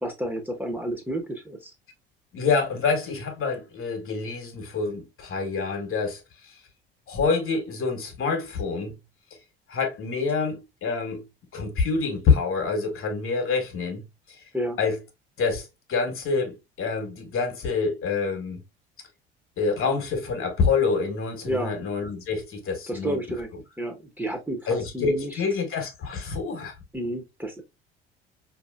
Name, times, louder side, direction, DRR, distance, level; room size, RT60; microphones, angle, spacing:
voice 1, 0.0-1.7 14.5-14.8 21.4-21.7 22.9-23.5 23.8-25.4 26.9-27.6, right 1 dB, 5° right, 1.0 m, -31 dB
voice 2, 2.3-6.5 7.1-9.0 9.7-11.2 11.5-14.0 14.3-14.4 14.8-15.0 15.4-18.6 19.6-23.2 23.5-23.6 24.7-26.8, left 4 dB, 45° left, 1.2 m, -27 dB
4.6 x 2.8 x 2.3 m
hypercardioid pair, 60°, 29 cm